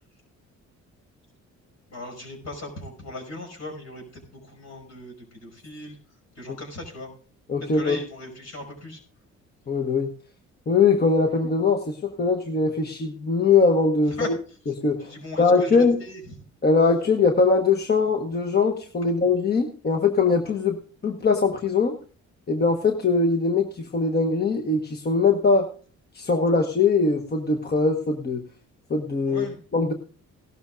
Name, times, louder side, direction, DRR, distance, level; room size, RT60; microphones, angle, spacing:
voice 1, 1.9-5.1 5.4-6.0 6.4-7.1 7.6-9.0 14.2-14.3 15.0-16.2 29.3-29.6, left 1 dB, 65° left, 2 dB, 5.7 m, -38 dB
voice 2, 7.5-8.0 9.7-10.1 10.7-14.3 14.7-16.0 16.6-21.9 22.5-25.7 26.1-28.4 28.9-29.5 29.7-29.9, left 4 dB, 35° left, 5 dB, 1.2 m, -21 dB
16.5 x 12.5 x 2.5 m, 0.40 s
cardioid pair, 90°, 30 cm